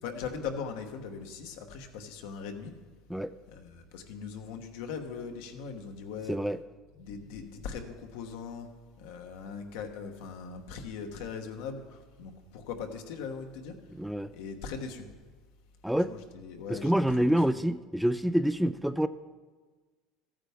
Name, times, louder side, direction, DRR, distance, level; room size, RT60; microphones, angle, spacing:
voice 1, 0.0-2.7 3.5-6.4 7.0-8.7 9.0-13.8 14.3-15.1 16.1-16.9 17.2-17.4, left 6 dB, 80° left, 5 dB, 1.1 m, -40 dB
voice 2, 6.3-6.6 14.0-14.3 15.8-16.1 16.7-19.1, right 1 dB, ahead, 13 dB, 0.3 m, -27 dB
14.0 x 8.8 x 3.5 m, 1.4 s
supercardioid pair, 105°, 0 cm